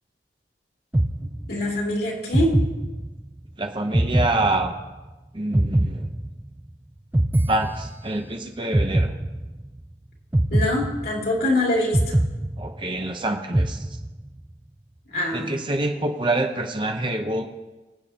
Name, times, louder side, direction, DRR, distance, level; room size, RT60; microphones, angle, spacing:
sound 1, 0.9-1.8 2.3-3.4 3.9-5.1 5.5-6.7 7.1-8.3 8.7-9.8 10.3-11.5 11.9-13.1 13.5-14.4, right 1 dB, 10° right, 0.3 m, -23 dB
voice 1, 1.5-2.6 10.5-12.2 15.1-15.5, left 1 dB, 60° left, -3 dB, 2.9 m, -24 dB
voice 2, 3.6-4.7 5.3-6.1 7.5-9.1 12.6-13.9 15.3-17.5, right 2 dB, 25° right, 4 dB, 0.8 m, -26 dB
24.0 x 8.8 x 2.9 m, 1.2 s
head